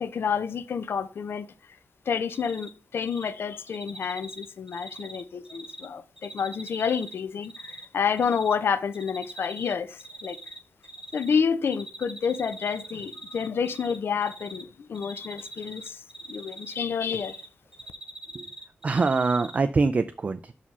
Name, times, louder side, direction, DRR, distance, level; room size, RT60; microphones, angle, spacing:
voice 1, 0.0-1.5 2.1-10.4 11.1-17.4, left 6 dB, 65° left, 0.5 m, -29 dB
Cricket, 2.3-2.7 3.0-3.3 3.7-5.9 6.2-7.8 8.2-8.5 8.9-9.7 10.0-11.4 11.7-14.0 14.2-14.6 14.9-17.5 17.7-19.6, right 1 dB, 15° right, 1.0 m, -42 dB
voice 2, 18.8-20.5, right 4 dB, 35° right, 0.3 m, -24 dB
5.7 x 4.9 x 5.4 m
wide cardioid pair, 145°, 4 cm